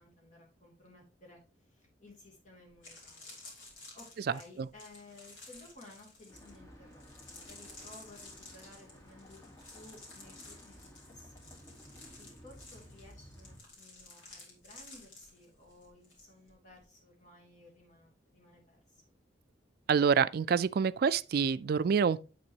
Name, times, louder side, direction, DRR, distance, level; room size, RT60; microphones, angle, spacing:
voice 1, 0.0-3.4 3.7-19.1, left 2 dB, 45° left, 2.9 m, -57 dB
sound 1, 2.7-16.2 16.5-16.8, left 2 dB, 90° left, 2.9 m, -53 dB
sound 2, 6.3-13.6, equal, 15° left, 1.5 m, -55 dB
voice 2, 19.9-22.2, right 6 dB, 55° right, 0.3 m, -27 dB
8.0 x 6.1 x 2.9 m
head